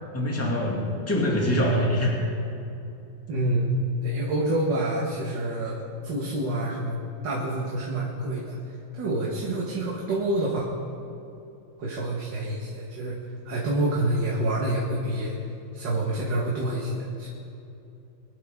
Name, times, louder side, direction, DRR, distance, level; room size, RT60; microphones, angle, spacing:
voice 1, 0.1-2.2, equal, 5° left, -3 dB, 2.4 m, -24 dB
voice 2, 3.3-3.7 4.0-5.8 6.0-7.0 7.2-10.6 11.8-13.2 13.4-15.3 15.7-17.3, right 1 dB, 60° right, -4 dB, 2.3 m, -27 dB
24.0 x 12.5 x 3.8 m, 2.7 s
omnidirectional pair, 2.3 m